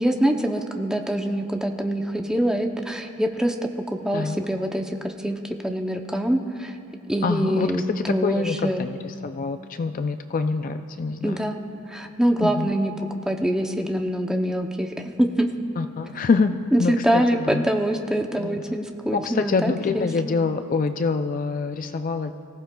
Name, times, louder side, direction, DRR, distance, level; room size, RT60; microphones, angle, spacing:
voice 1, 0.0-6.8 7.1-8.9 11.2-11.6 11.9-12.9 13.2-15.5 16.7-20.3, right 1 dB, 5° right, 3 dB, 0.6 m, -24 dB
voice 2, 7.2-11.5 12.4-12.7 15.8-17.7 18.4-18.8 19.1-22.4, left 4 dB, 40° left, 8 dB, 0.3 m, -26 dB
24.0 x 15.0 x 2.3 m, 2.5 s
head